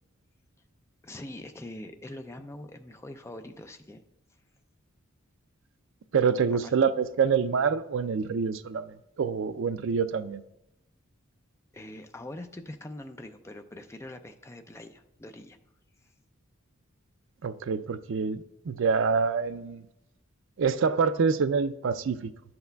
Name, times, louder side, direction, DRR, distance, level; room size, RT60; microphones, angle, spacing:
voice 1, 1.0-4.0 6.6-6.7 11.7-15.6 16.0-16.1, left 1 dB, 15° left, 0.4 m, -43 dB
voice 2, 6.1-10.4 17.4-19.9 20.6-22.3, right 5 dB, 65° right, 0.4 m, -26 dB
12.0 x 8.0 x 2.3 m
head